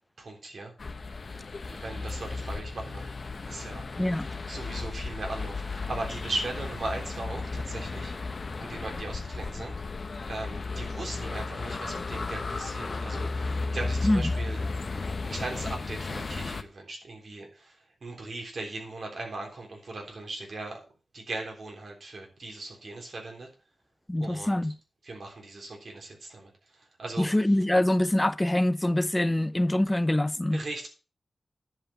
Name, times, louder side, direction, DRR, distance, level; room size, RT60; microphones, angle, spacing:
voice 1, 0.2-0.7 1.3-3.1 3.4-3.8 4.5-8.1 8.6-9.7 10.3-14.6 15.2-20.8 21.1-23.5 24.2-24.6 25.0-27.4 30.5-30.9, right 2 dB, 70° right, 3.5 m, -38 dB
sound 1, 0.8-16.6, left 3 dB, 60° left, 1.0 m, -34 dB
voice 2, 4.0-4.3 14.0-14.3 24.1-24.7 27.2-30.6, left 1 dB, 15° left, 0.7 m, -24 dB
10.5 x 5.0 x 7.1 m
cardioid pair, 65°, 0 cm